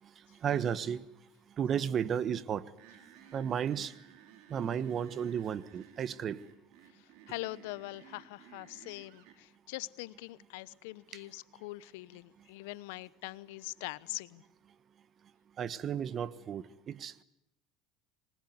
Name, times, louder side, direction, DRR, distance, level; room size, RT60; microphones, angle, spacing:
voice 1, 0.0-1.0 1.6-2.7 3.3-3.9 4.5-6.4 11.1-11.2 15.6-17.2, right 8 dB, 40° right, 1.4 m, -34 dB
sound 1, 2.8-9.4, right 9 dB, 70° right, 5.2 m, -57 dB
voice 2, 7.3-14.4, left 20 dB, 80° left, 0.9 m, -43 dB
26.5 x 20.5 x 9.6 m
supercardioid pair, 95°, 0 cm